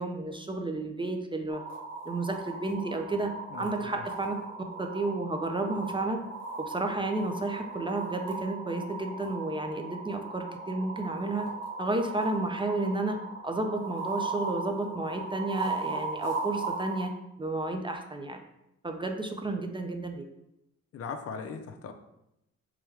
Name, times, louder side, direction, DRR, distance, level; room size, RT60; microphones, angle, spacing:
voice 1, 0.0-1.6 2.1-4.4 4.8-6.2 6.7-11.5 11.8-17.1 17.4-18.4 18.8-20.3, right 2 dB, 15° right, 4 dB, 0.4 m, -32 dB
sound 1, 1.5-17.0, right 3 dB, 60° right, 1.0 m, -37 dB
voice 2, 3.5-4.0 20.9-21.9, left 5 dB, 50° left, 7 dB, 0.5 m, -39 dB
3.5 x 3.3 x 3.2 m, 0.86 s
cardioid pair, 90°, 30 cm